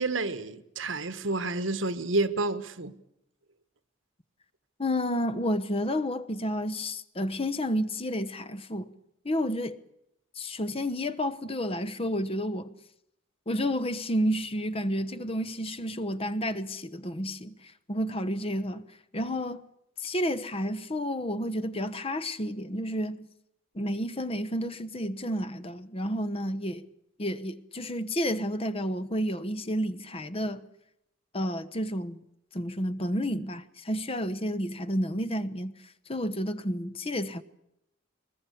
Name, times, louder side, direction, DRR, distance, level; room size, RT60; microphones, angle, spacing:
voice 1, 0.0-2.9, right 2 dB, 75° right, 1.4 m, -29 dB
voice 2, 4.8-8.9 9.2-9.8 10.4-12.7 13.5-18.8 19.1-19.6 20.0-23.3 23.7-26.9 27.2-30.6 31.3-32.2 32.5-35.7 36.1-37.4, equal, 30° left, 1.1 m, -30 dB
22.5 x 20.5 x 8.5 m
head